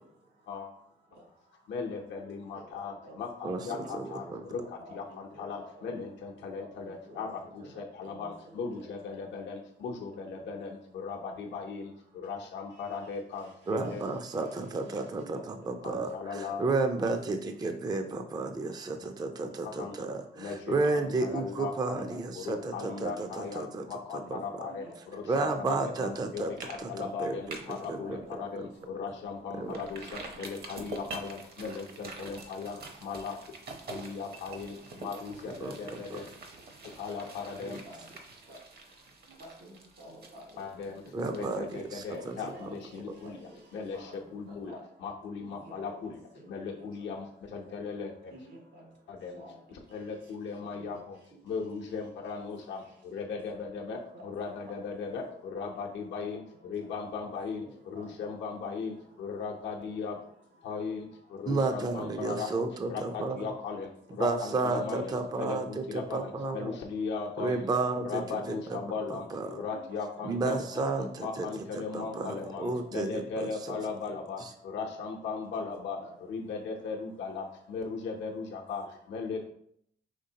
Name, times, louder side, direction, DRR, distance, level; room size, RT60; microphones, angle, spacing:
voice 1, 1.7-4.6 4.9-14.0 15.8-16.6 19.6-20.0 20.4-22.0 22.3-33.5 33.9-36.3 37.0-37.8 40.6-43.4 43.7-46.2 46.5-48.3 49.1-49.4 49.9-51.2 51.4-60.2 60.6-62.5 62.9-67.7 68.0-70.9 71.2-76.0 76.3-79.4, left 5 dB, 80° left, 0 dB, 0.7 m, -38 dB
voice 2, 2.9-3.2 3.6-3.9 4.2-4.3 4.8-5.0 5.3-5.9 6.5-7.2 7.6-9.2 15.1-16.0 16.3-16.5 20.3-20.4 21.9-22.2 22.5-23.0 23.3-23.4 24.7-25.2 26.3-27.3 27.9-28.3 28.8-28.9 37.8-38.0 38.5-38.6 39.4-40.6 41.1-41.5 42.1-42.2 42.5-43.3 43.9-44.2 44.7-44.8 45.6-45.9 46.3-46.9 48.3-48.6 49.3-49.5 54.1-54.3 57.6-58.3 66.4-66.6 69.9-70.0 72.1-72.2 73.8-74.0 74.8-74.9 75.8-76.1, equal, 75° right, -1 dB, 1.8 m, -49 dB
voice 3, 3.4-4.4 13.7-23.9 24.1-24.7 25.3-26.5 26.8-28.2 29.5-29.8 35.6-36.2 37.7-37.8 41.1-42.5 61.5-63.5 64.2-66.8 67.4-68.8 69.1-69.6 70.2-73.8 74.4-74.5, right 3 dB, 20° right, 6 dB, 0.4 m, -32 dB
sound 1, 26.0-26.3 26.6-26.8 27.1-27.9 28.3-28.4 28.8-28.9 29.7-43.3 43.6-43.7, right 3 dB, 60° right, 0.9 m, -46 dB
5.0 x 3.4 x 2.8 m, 0.68 s
cardioid pair, 95°, 18 cm